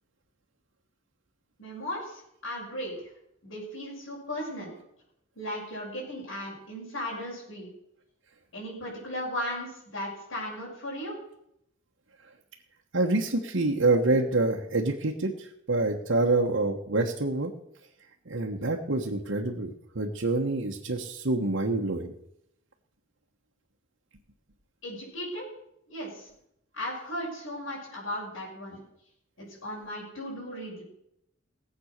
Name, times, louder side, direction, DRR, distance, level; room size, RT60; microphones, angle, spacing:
voice 1, 1.6-3.1 3.4-4.7 5.4-7.7 8.5-11.1 24.8-25.5 25.9-26.3 26.7-28.8 29.4-30.8, equal, 80° left, -6 dB, 6.4 m, -36 dB
voice 2, 12.9-17.5 18.3-22.1, right 2 dB, 70° right, -1 dB, 1.3 m, -27 dB
18.5 x 8.0 x 6.6 m, 0.77 s
head